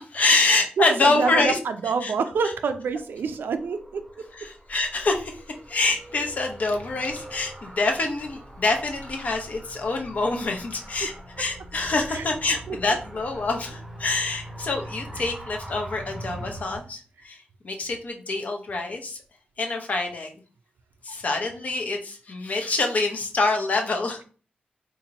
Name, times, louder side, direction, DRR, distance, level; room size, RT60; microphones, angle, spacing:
voice 1, 0.1-1.6 2.0-2.1 4.4-19.2 19.6-20.3 21.0-24.2, left 3 dB, 50° left, 3 dB, 0.6 m, -26 dB
voice 2, 0.8-4.0 12.1-12.2 12.7-13.0 15.2-15.3, right 5 dB, 80° right, 9 dB, 0.4 m, -27 dB
Car, 2.8-16.8, right 1 dB, 5° right, 0.8 m, -42 dB
2.8 x 2.5 x 3.9 m, 0.40 s
wide cardioid pair, 155°, 3 cm